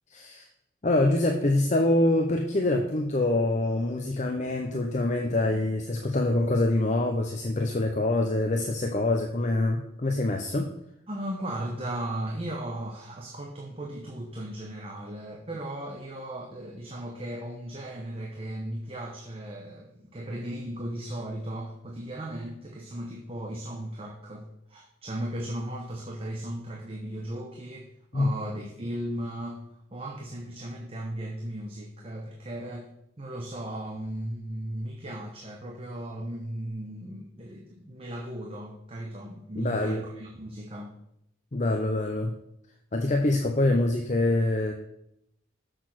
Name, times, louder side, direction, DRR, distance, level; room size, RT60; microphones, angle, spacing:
voice 1, 0.1-0.5 0.8-10.7 28.1-28.3 39.6-40.0 41.5-42.4 42.9-44.7, left 2 dB, 35° left, 3 dB, 0.6 m, -25 dB
voice 2, 11.1-29.6 29.9-32.9 33.2-40.9, right 1 dB, 30° right, 0 dB, 0.9 m, -36 dB
6.3 x 6.3 x 6.3 m, 0.77 s
head